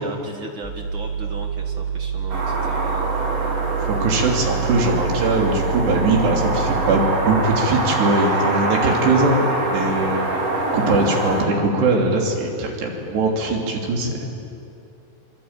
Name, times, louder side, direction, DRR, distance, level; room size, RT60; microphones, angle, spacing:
voice 1, 0.0-3.1, right 3 dB, 60° right, 3 dB, 1.3 m, -37 dB
sound 1, 0.6-7.1, right 7 dB, 20° right, 7.6 m, -27 dB
sound 2, 2.3-11.4, right 2 dB, 40° right, 4.3 m, -25 dB
voice 2, 3.8-10.3 10.7-14.4, right 2 dB, 85° right, 1 dB, 5.3 m, -21 dB
26.0 x 24.5 x 9.0 m, 2.7 s
omnidirectional pair, 4.7 m